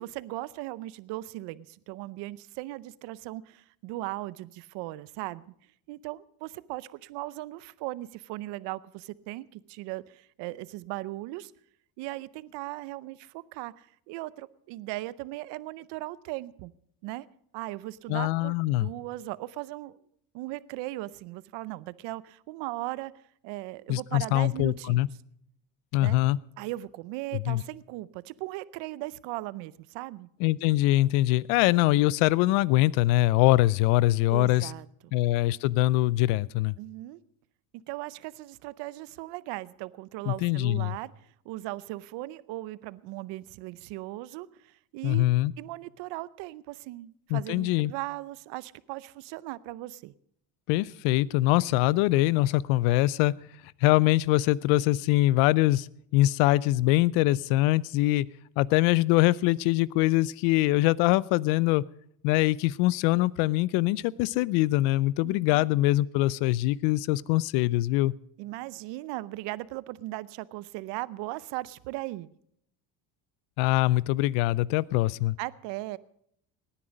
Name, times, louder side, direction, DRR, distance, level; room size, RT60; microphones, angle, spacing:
voice 1, 0.0-5.4 5.9-11.5 12.0-16.7 17.0-17.3 17.5-20.0 20.3-23.1 23.4-25.1 26.0-26.2 26.6-30.3 34.3-35.1 36.8-37.2 37.7-45.3 45.6-50.1 65.2-65.7 68.4-72.3 75.4-76.0, right 18 dB, 75° right, 19 dB, 0.7 m, -38 dB
voice 2, 18.1-18.9 23.9-25.1 25.9-26.4 27.3-27.6 30.4-34.7 35.1-36.8 40.3-40.9 45.0-45.5 47.3-47.9 50.7-53.3 53.8-55.9 56.1-58.3 58.6-61.8 62.2-68.1 73.6-75.4, left 17 dB, 85° left, 23 dB, 0.6 m, -23 dB
18.5 x 10.0 x 5.1 m, 0.69 s
cardioid pair, 120°, 43 cm